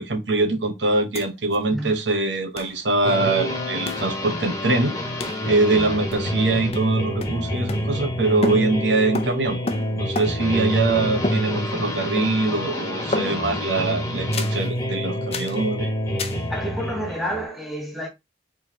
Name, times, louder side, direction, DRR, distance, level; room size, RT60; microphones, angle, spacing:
voice 1, 0.0-4.9 5.4-9.6 9.9-15.9, right 3 dB, 90° right, 1.2 m, -23 dB
sound 1, 1.1-1.2 1.5-1.6 2.6-2.8 3.9-4.1 5.2-5.4 6.1-6.4 6.7-8.2 8.4-10.6 11.2-11.9 12.2-12.6 13.1-13.6 14.3-14.6 15.3-15.6 16.2-16.5, left 2 dB, 35° left, 0.6 m, -31 dB
sound 2, 3.0-17.5, equal, 20° left, 1.4 m, -27 dB
voice 2, 16.5-18.1, equal, ahead, 1.3 m, -29 dB
4.6 x 3.9 x 2.9 m
head